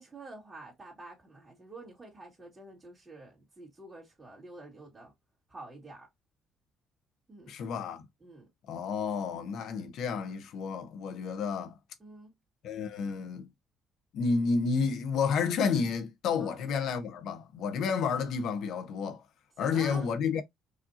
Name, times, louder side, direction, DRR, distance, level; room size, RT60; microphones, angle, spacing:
voice 1, 0.0-5.1 5.5-6.1 7.3-7.5 8.2-8.5 12.0-12.4 16.4-16.6 19.6-20.1, right 2 dB, 20° right, 2.1 m, -48 dB
voice 2, 7.5-8.1 8.7-11.7 12.6-13.5 14.1-19.2 19.6-20.4, left 5 dB, 70° left, 0.9 m, -30 dB
4.8 x 2.7 x 2.7 m
cardioid pair, 100°, 0 cm